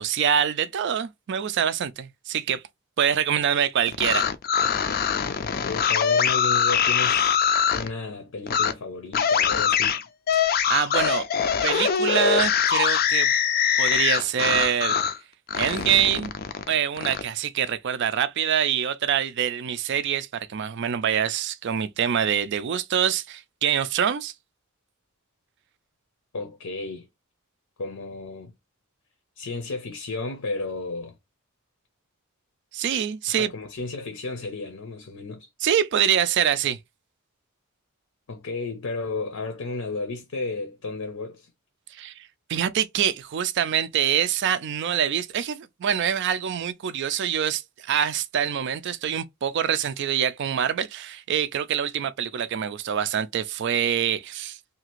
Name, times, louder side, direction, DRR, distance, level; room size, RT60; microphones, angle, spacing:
voice 1, 0.0-2.6 3.0-4.3 10.4-11.2 11.6-13.3 13.8-15.0 15.6-16.3 16.7-24.3 32.7-33.5 35.6-36.8 41.9-54.6, right 9 dB, 50° right, 0.3 m, -25 dB
sound 1, 3.9-7.9 8.5-8.7 9.1-15.2 15.5-17.2, left 8 dB, 40° left, 0.4 m, -23 dB
voice 2, 5.7-7.3 7.7-10.0 26.3-27.1 27.8-28.5 29.4-31.1 33.3-35.5 38.3-41.5, left 3 dB, 75° left, 0.7 m, -33 dB
2.8 x 2.4 x 2.9 m
head